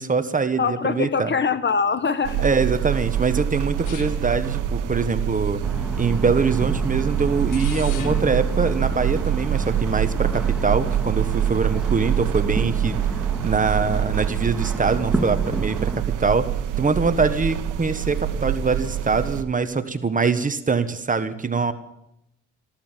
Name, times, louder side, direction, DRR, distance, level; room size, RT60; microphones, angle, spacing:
voice 1, 0.0-1.3 2.4-5.6 6.0-13.0 13.4-15.9 16.2-16.5 16.8-21.7, right 4 dB, 25° right, 10 dB, 1.3 m, -23 dB
voice 2, 0.6-2.4, left 5 dB, 35° left, 13 dB, 1.1 m, -23 dB
sound 1, 2.2-19.4, right 10 dB, 90° right, 1.1 m, -25 dB
sound 2, 3.8-9.3, left 6 dB, 85° left, 1.5 m, -41 dB
sound 3, 5.6-16.0, right 1 dB, 5° right, 1.9 m, -32 dB
14.0 x 13.5 x 7.5 m, 0.82 s
cardioid pair, 90°, 30 cm